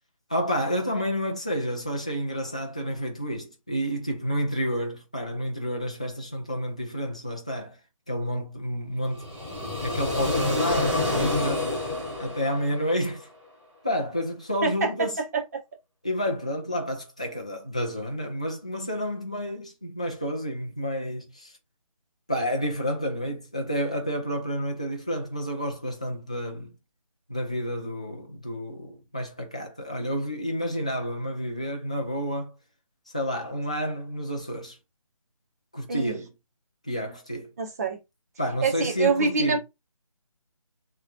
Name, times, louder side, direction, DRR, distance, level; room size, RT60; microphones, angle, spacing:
voice 1, 0.3-7.8 8.1-9.4 9.8-11.8 12.2-13.3 13.8-15.2 16.0-21.5 22.3-26.7 27.3-32.5 33.1-34.8 35.7-36.3 36.8-37.5 38.4-39.6, equal, 10° left, 0.3 m, -30 dB
sound 1, 9.1-13.2, left 2 dB, 10° right, 2.8 m, -27 dB
voice 2, 14.6-15.6 35.9-36.2 37.6-38.0 38.6-39.6, right 4 dB, 30° right, 0.8 m, -26 dB
6.5 x 3.0 x 2.4 m
figure-of-eight pair, 160°, 17 cm